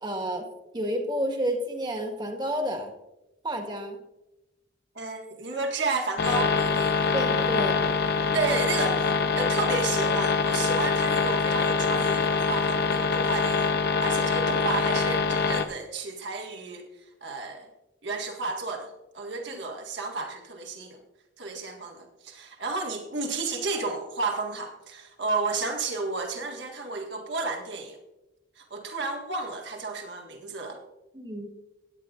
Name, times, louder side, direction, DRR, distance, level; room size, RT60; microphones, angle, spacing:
voice 1, 0.0-0.5 0.7-2.9 3.4-4.0 7.1-7.8 31.1-31.5, equal, 25° right, 3 dB, 1.6 m, -30 dB
voice 2, 5.0-7.2 8.3-9.1 9.4-16.9 17.2-17.7 18.0-21.0 21.4-28.0 28.6-30.8, right 3 dB, 65° right, 2 dB, 1.8 m, -32 dB
sound 1, 6.2-15.7, left 4 dB, 55° left, 0.8 m, -24 dB
16.5 x 9.5 x 2.5 m, 0.96 s
head